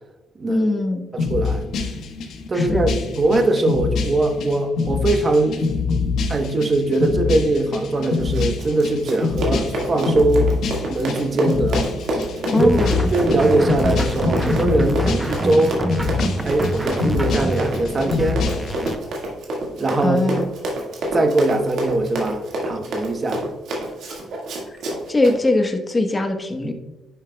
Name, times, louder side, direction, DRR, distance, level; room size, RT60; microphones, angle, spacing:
voice 1, 0.4-1.0 2.5-2.9 12.5-12.9 20.0-20.5 25.1-26.7, left 2 dB, 25° left, 5 dB, 1.1 m, -21 dB
voice 2, 1.1-1.7 2.5-5.7 6.3-10.5 10.9-11.9 12.6-12.7 13.1-15.8 16.4-18.4 19.8-20.2 21.1-23.4, right 2 dB, 35° right, 6 dB, 1.0 m, -21 dB
sound 1, 1.2-18.9, left 4 dB, 75° left, 1.2 m, -25 dB
Run, 8.2-25.4, right 1 dB, 75° right, 1.8 m, -28 dB
sound 2, 12.6-19.0, right 1 dB, 10° right, 0.8 m, -27 dB
11.0 x 5.7 x 2.3 m, 1.1 s
cardioid pair, 90°, 0 cm